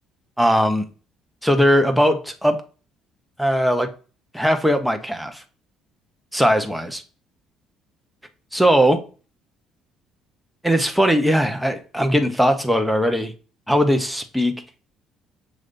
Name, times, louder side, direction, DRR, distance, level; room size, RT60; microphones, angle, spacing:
voice 1, 0.4-0.9 1.4-2.6 3.4-3.9 4.3-5.4 6.3-7.0 8.5-9.0 10.6-13.3 13.7-14.6, equal, ahead, 5 dB, 0.7 m, -19 dB
6.4 x 3.2 x 2.5 m, 0.36 s
cardioid pair, 140°, 0 cm